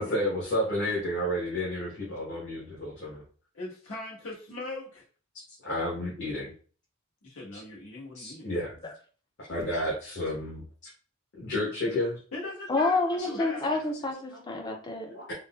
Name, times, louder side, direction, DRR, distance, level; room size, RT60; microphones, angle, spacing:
voice 1, 0.0-3.2 5.6-6.5 7.5-7.6 8.1-8.7 9.5-10.9 11.4-12.2 13.2-13.3 14.3-14.4 15.1-15.3, left 1 dB, 55° left, -6 dB, 0.9 m, -31 dB
voice 2, 3.5-5.0 7.2-8.5 12.3-13.8, left 2 dB, 80° left, -4 dB, 1.2 m, -40 dB
voice 3, 12.7-15.1, left 2 dB, 20° left, 3 dB, 0.3 m, -28 dB
3.8 x 2.1 x 2.3 m, 0.41 s
head